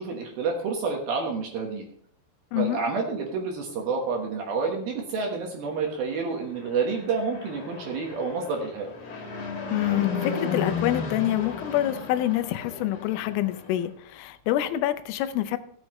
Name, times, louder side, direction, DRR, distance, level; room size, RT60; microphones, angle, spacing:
voice 1, 0.0-1.8 2.6-8.9, right 4 dB, 65° right, 1 dB, 2.6 m, -29 dB
voice 2, 2.5-2.8 9.7-15.6, left 13 dB, 90° left, 11 dB, 3.3 m, -26 dB
Fixed-wing aircraft airplane, 6.5-13.9, left 5 dB, 45° left, 2.7 m, -34 dB
16.5 x 8.1 x 3.1 m, 0.64 s
omnidirectional pair, 5.6 m